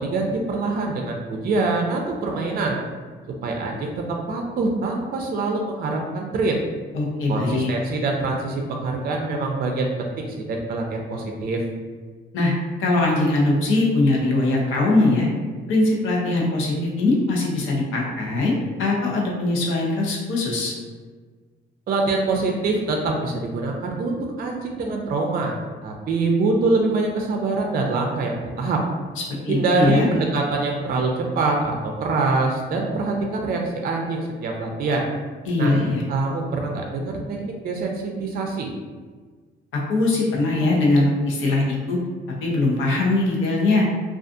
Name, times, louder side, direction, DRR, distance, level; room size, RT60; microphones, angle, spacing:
voice 1, 0.0-2.8 3.4-6.6 7.3-11.6 21.9-25.5 25.8-28.8 29.5-35.1 35.6-35.8 36.1-38.7, right 3 dB, 50° right, 1 dB, 0.4 m, -24 dB
voice 2, 6.9-7.7 12.3-12.5 12.8-15.3 15.7-18.5 18.8-20.7 29.2-30.1 35.4-36.0 39.9-42.0 42.4-43.9, left 2 dB, 85° left, -2 dB, 0.7 m, -21 dB
2.5 x 2.3 x 2.4 m, 1.5 s
cardioid pair, 90°, 20 cm